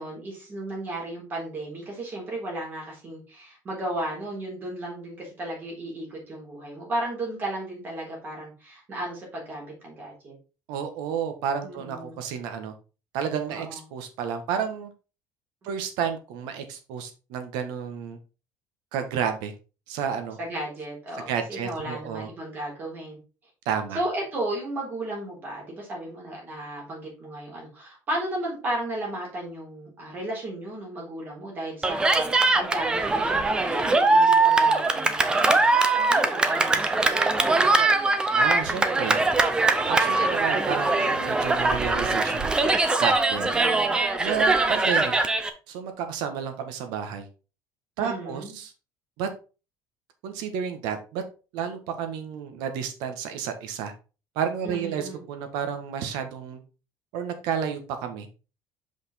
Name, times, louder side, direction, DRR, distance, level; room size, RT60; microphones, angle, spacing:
voice 1, 0.0-10.4 11.6-12.2 13.5-13.8 20.4-23.2 23.9-35.6 36.1-37.9 43.4-43.9 48.0-48.5 54.6-55.2, right 1 dB, 30° right, -2 dB, 3.8 m, -34 dB
voice 2, 10.7-12.7 13.1-14.9 15.6-18.2 18.9-19.5 19.9-20.4 21.3-22.3 23.6-24.0 38.3-39.2 39.9-42.7 43.0-43.5 44.2-45.2 45.7-47.3 48.0-48.7 49.2-49.3 50.2-51.2 51.5-53.9 54.3-56.6 57.1-58.3, right 7 dB, 90° right, 7 dB, 1.6 m, -31 dB
Cheering, 31.8-45.5, right 3 dB, 10° right, 0.7 m, -22 dB
6.1 x 5.4 x 4.3 m, 0.33 s
cardioid pair, 170°, 7 cm